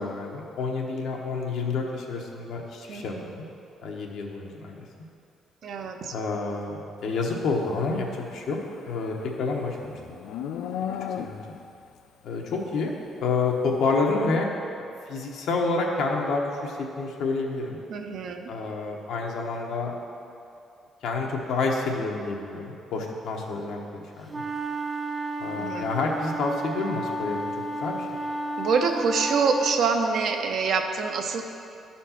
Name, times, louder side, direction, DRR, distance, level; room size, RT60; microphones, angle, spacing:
voice 1, 0.0-3.4 3.8-4.9 6.1-8.6 8.8-9.9 11.2-11.4 12.2-12.9 13.2-14.5 15.1-17.8 18.5-19.9 21.0-24.4 25.4-27.4 27.8-28.2, left 3 dB, 75° left, 0 dB, 1.1 m, -29 dB
voice 2, 2.9-3.2 5.6-6.1 17.9-18.5 25.6-25.9 28.6-31.4, right 5 dB, 55° right, 4 dB, 0.7 m, -26 dB
Livestock farm animals working animals, 8.5-11.7, left 8 dB, 90° left, 0.4 m, -35 dB
sound 1, 24.3-29.8, right 1 dB, 20° right, 0.4 m, -32 dB
11.0 x 4.4 x 5.8 m, 2.6 s
cardioid pair, 140°, 0 cm